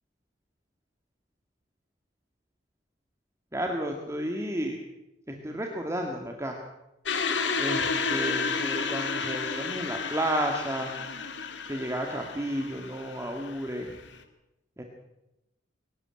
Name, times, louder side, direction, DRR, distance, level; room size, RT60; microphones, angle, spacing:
voice 1, 3.5-4.8 5.3-6.6 7.6-10.9 11.7-13.9 14.8-14.9, right 1 dB, 15° right, 2 dB, 2.0 m, -32 dB
sound 1, 7.1-14.2, left 4 dB, 70° left, 2.2 m, -31 dB
23.0 x 12.5 x 9.0 m, 0.93 s
head